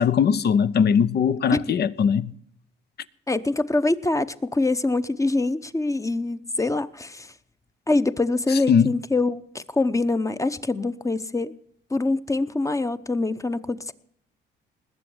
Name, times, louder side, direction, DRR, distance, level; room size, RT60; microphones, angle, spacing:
voice 1, 0.0-2.3 8.7-8.9, left 7 dB, 55° left, 0.8 m, -20 dB
voice 2, 3.3-7.3 7.9-11.5 11.9-13.9, left 2 dB, 15° left, 0.9 m, -24 dB
20.0 x 7.7 x 8.0 m
cardioid pair, 90°, 20 cm